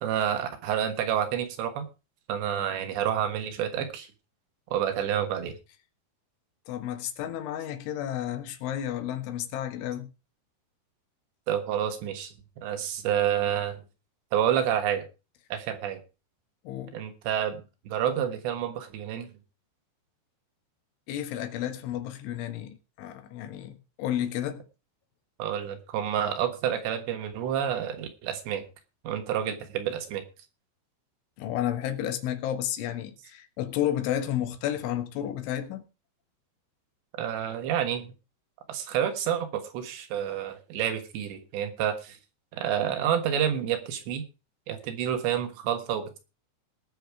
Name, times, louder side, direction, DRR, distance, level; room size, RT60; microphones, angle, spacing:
voice 1, 0.0-1.9 2.3-4.1 4.7-5.6 11.5-13.8 14.3-15.0 15.5-16.0 16.9-19.3 25.4-28.7 29.1-30.2 37.2-38.1 38.7-42.2 42.5-44.2 44.7-46.2, right 9 dB, 70° right, 3.6 m, -29 dB
voice 2, 6.7-10.1 16.7-17.0 21.1-24.7 31.4-35.8, left 11 dB, 90° left, 3.9 m, -32 dB
19.5 x 6.8 x 4.8 m
omnidirectional pair, 5.3 m